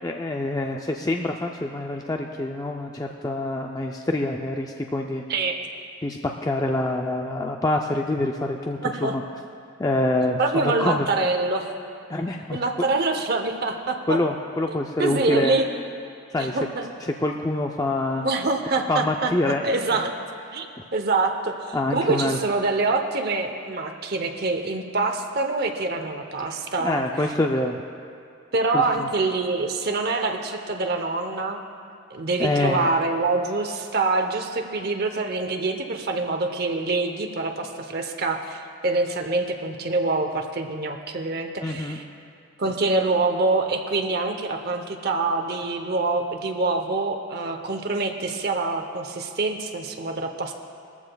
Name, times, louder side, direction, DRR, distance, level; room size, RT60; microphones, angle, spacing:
voice 1, 0.0-5.2 6.0-9.2 9.8-11.1 12.1-12.6 14.1-15.6 16.3-16.6 17.0-18.3 18.9-19.6 19.9-20.0 21.7-22.4 26.8-27.7 28.7-29.1 32.4-32.9 41.6-42.0, left 2 dB, 15° left, 2 dB, 0.4 m, -26 dB
voice 2, 8.8-9.1 10.4-11.7 12.5-14.2 15.0-15.7 16.4-16.9 18.2-20.1 20.5-20.7 20.9-27.3 28.5-31.6 32.1-42.0 42.6-50.5, right 3 dB, 45° right, 4 dB, 0.8 m, -25 dB
20.5 x 14.5 x 2.3 m, 2.4 s
head